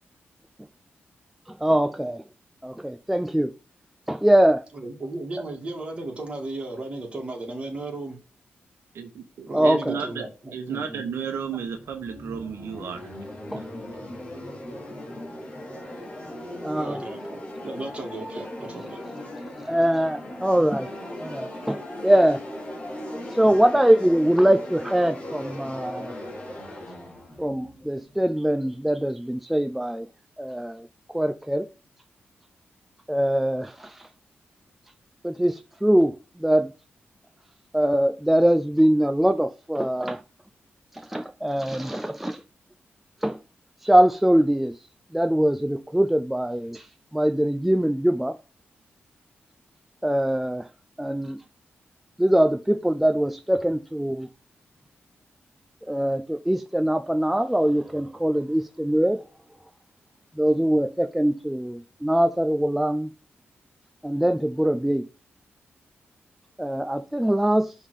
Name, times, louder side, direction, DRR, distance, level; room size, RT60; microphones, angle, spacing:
voice 1, 1.5-2.2 2.6-3.5 4.1-4.7 9.5-10.0 13.5-13.6 16.6-17.0 19.7-20.9 21.2-22.4 23.3-26.1 27.4-30.1 30.4-31.7 33.1-34.1 35.2-36.7 37.7-40.2 40.9-42.4 43.2-43.4 43.8-44.8 45.1-46.9 47.1-48.4 50.0-50.7 51.0-51.4 52.2-54.3 55.8-59.2 60.4-63.1 64.0-65.1 66.6-67.7, right 1 dB, 5° right, 0.4 m, -22 dB
voice 2, 4.7-8.2 9.5-11.0 16.7-19.0, right 2 dB, 25° right, 2.1 m, -35 dB
voice 3, 8.9-10.3 10.5-13.1 13.6-14.0, right 7 dB, 90° right, 1.1 m, -33 dB
sound 1, 11.0-28.7, left 1 dB, 25° left, 2.1 m, -38 dB
5.7 x 3.6 x 4.9 m
wide cardioid pair, 155°, 4 cm